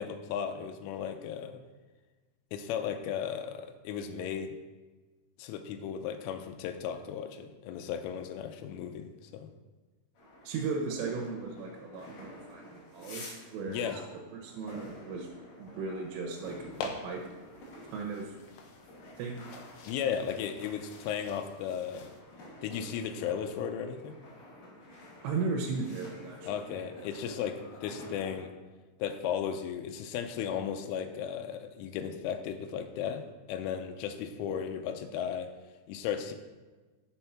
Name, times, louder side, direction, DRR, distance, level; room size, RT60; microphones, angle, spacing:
voice 1, 0.0-1.6 2.5-4.6 5.4-9.5 13.7-14.0 19.9-22.1 22.6-24.2 26.5-28.5 29.0-33.2 33.5-35.5 35.9-36.3, left 8 dB, 90° left, 7 dB, 3.2 m, -35 dB
sound 1, 10.1-28.4, left 1 dB, 45° left, 4.4 m, -50 dB
voice 2, 10.5-14.0 14.4-15.3 15.6-16.6 16.8-17.2 17.8-18.4 19.2-19.4 25.2-26.6, right 4 dB, 90° right, 0 dB, 3.6 m, -36 dB
sound 2, 16.7-22.2, left 3 dB, 75° left, 2.5 m, -46 dB
8.1 x 7.0 x 5.9 m, 1.3 s
omnidirectional pair, 5.6 m